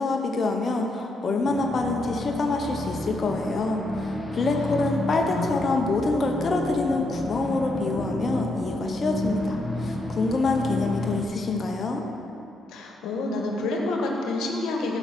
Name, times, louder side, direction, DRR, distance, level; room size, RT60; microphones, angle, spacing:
voice 1, 0.0-12.1, left 3 dB, 45° left, 2 dB, 1.0 m, -26 dB
sound 1, 1.5-11.2, left 1 dB, ahead, 1.6 m, -31 dB
voice 2, 12.7-15.0, left 2 dB, 85° left, 1 dB, 1.4 m, -28 dB
14.5 x 5.6 x 6.1 m, 2.8 s
cardioid pair, 90°, 0 cm